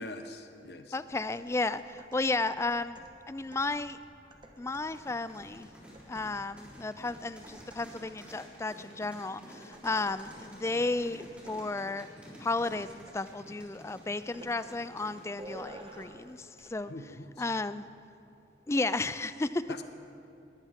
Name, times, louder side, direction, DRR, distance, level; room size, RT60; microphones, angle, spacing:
voice 1, 0.0-1.0 16.8-17.5 19.7-19.8, left 1 dB, 65° left, 7 dB, 1.0 m, -43 dB
voice 2, 0.9-3.0 3.3-4.0 4.6-5.7 6.1-12.1 12.4-16.9 17.4-17.8 18.7-19.6, left 3 dB, 15° left, 14 dB, 0.3 m, -33 dB
sound 1, 1.1-8.2 9.7-11.7 12.6-13.3 13.6-13.8 14.3-14.6 15.4-16.3 16.6-16.8, right 1 dB, 25° right, 1.2 m, -53 dB
sound 2, 4.9-16.4, equal, 5° right, 3.8 m, -51 dB
20.5 x 18.5 x 3.6 m, 2.7 s
head